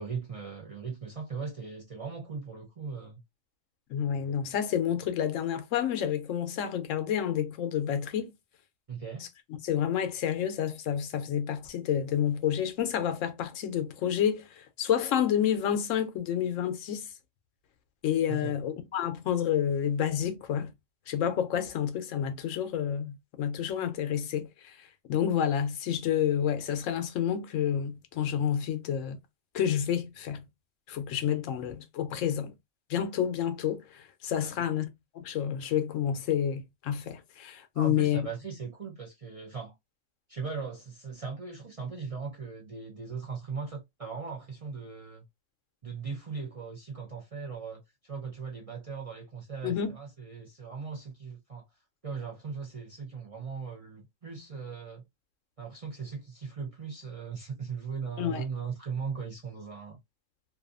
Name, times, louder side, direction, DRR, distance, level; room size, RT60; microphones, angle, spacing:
voice 1, 0.0-3.2 8.9-9.3 18.3-18.6 34.4-34.7 37.7-39.7 40.3-45.3 45.8-51.7 52.0-55.0 55.6-60.0, right 5 dB, 45° right, 0.5 m, -39 dB
voice 2, 3.9-8.3 9.6-17.1 18.0-20.7 21.1-24.7 25.1-29.2 29.5-30.4 30.9-32.5 32.9-38.3 49.6-49.9 58.2-58.4, left 9 dB, 85° left, 1.0 m, -29 dB
2.6 x 2.3 x 2.4 m
omnidirectional pair, 1.3 m